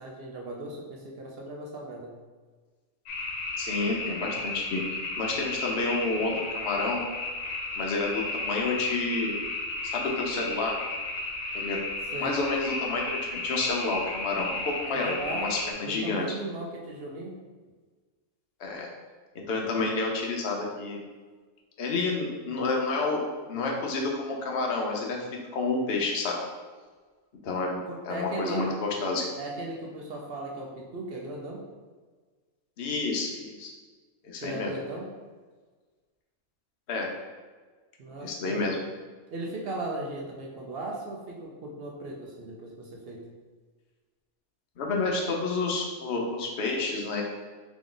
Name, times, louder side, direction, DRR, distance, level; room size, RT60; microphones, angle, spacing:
voice 1, 0.0-2.2 12.1-12.4 14.9-15.5 15.8-17.4 27.9-28.6 29.4-31.6 34.4-35.1 38.0-38.7 39.3-43.3, right 2 dB, 55° right, -1 dB, 0.7 m, -37 dB
sound 1, 3.1-15.7, left 2 dB, 85° left, 1.1 m, -34 dB
voice 2, 3.6-4.8 5.2-7.0 7.8-9.3 9.8-10.7 11.5-11.8 12.2-16.3 18.6-18.9 19.3-21.0 21.8-23.2 23.5-25.3 25.5-26.4 27.4-29.3 32.8-33.7 34.2-34.7 36.9-37.1 38.2-38.8 44.8-47.2, left 3 dB, 55° left, 0 dB, 0.9 m, -29 dB
3.5 x 3.0 x 3.8 m, 1.4 s
omnidirectional pair, 1.4 m